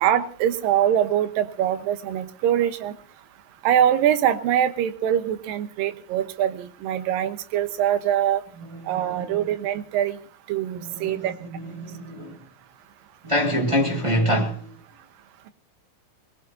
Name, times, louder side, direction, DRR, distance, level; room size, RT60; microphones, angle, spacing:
voice 1, 0.0-2.9 3.6-8.4 8.9-10.2 10.5-11.3, right 10 dB, 75° right, 2.6 m, -23 dB
voice 2, 8.6-9.3 10.7-12.4 13.2-14.7, equal, 35° right, 0.4 m, -26 dB
23.5 x 19.5 x 2.7 m
omnidirectional pair, 4.4 m